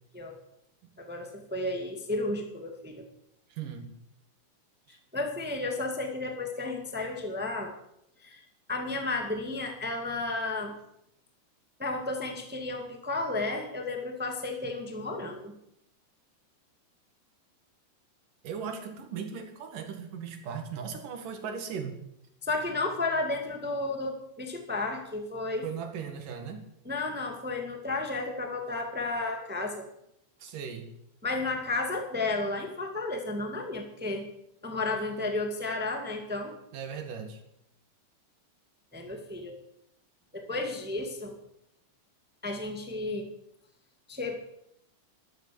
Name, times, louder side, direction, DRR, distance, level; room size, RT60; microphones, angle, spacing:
voice 1, 1.0-3.0 4.9-7.7 8.2-8.4 8.7-10.7 11.8-15.5 22.4-25.7 26.8-29.8 31.2-34.3 34.6-36.6 38.9-39.5 40.3-41.3 42.4-43.3 44.1-44.4, left 2 dB, 10° right, 4 dB, 0.6 m, -32 dB
voice 2, 3.5-3.9 4.9-5.0 18.4-21.9 25.6-26.7 30.4-30.9 36.7-37.4, right 6 dB, 60° right, 5 dB, 3.3 m, -38 dB
12.5 x 12.5 x 7.0 m, 0.77 s
omnidirectional pair, 4.4 m